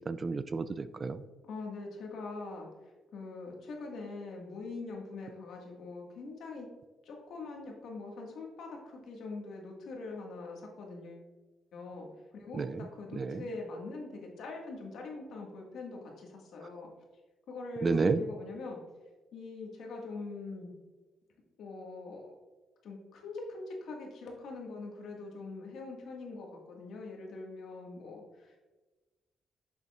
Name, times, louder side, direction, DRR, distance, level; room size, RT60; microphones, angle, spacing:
voice 1, 0.1-1.2 12.5-12.8 13.2-13.4 17.8-18.2, right 4 dB, 40° right, 13 dB, 0.3 m, -30 dB
voice 2, 1.4-2.7 3.1-6.7 7.0-11.2 11.7-12.1 12.3-12.6 12.9-16.9 17.5-18.8 19.3-20.7 21.6-22.3 22.8-28.6, left 3 dB, 75° left, 0 dB, 1.7 m, -43 dB
7.0 x 6.8 x 2.4 m, 1.2 s
cardioid pair, 85°, 0 cm